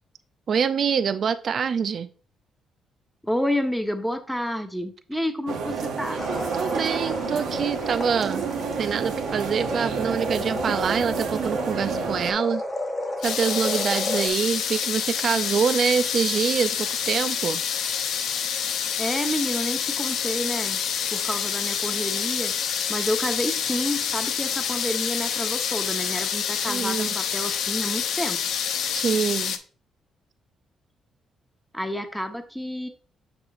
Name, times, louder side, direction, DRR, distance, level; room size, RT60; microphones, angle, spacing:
voice 1, 0.5-2.1 6.5-8.4 8.8-12.6 13.2-17.6 26.7-27.1 28.9-29.6, right 6 dB, 55° right, 11 dB, 0.4 m, -25 dB
voice 2, 3.2-6.2 19.0-20.8 21.1-22.5 22.9-28.4 31.7-32.9, equal, ahead, 6 dB, 1.0 m, -29 dB
sound 1, 5.5-12.3, right 6 dB, 85° right, 1.1 m, -30 dB
sound 2, 6.2-14.3, left 1 dB, 20° left, 1.1 m, -32 dB
sound 3, 13.2-29.6, left 8 dB, 75° left, 0.6 m, -27 dB
6.9 x 6.0 x 2.5 m, 0.40 s
cardioid pair, 90°, 0 cm